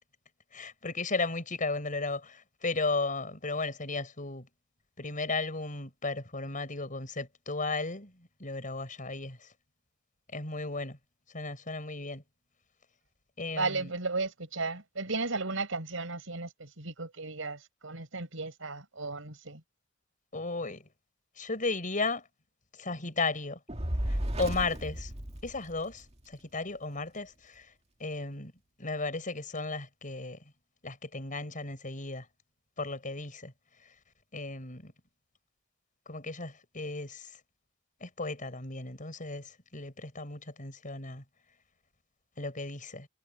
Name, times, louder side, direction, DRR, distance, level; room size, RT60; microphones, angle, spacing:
voice 1, 0.5-4.5 5.0-9.5 10.3-11.0 11.3-12.2 13.4-13.9 20.3-20.8 21.4-22.2 22.7-23.6 24.1-25.1 25.4-27.7 28.0-28.5 28.8-30.4 30.8-32.3 32.8-33.5 34.3-34.9 36.1-37.3 38.0-41.2 42.4-43.1, left 3 dB, 40° left, 6.4 m, -35 dB
voice 2, 13.5-19.6, right 3 dB, 80° right, 4.9 m, -35 dB
Fire, 23.7-26.1, equal, 35° right, 2.1 m, -34 dB
head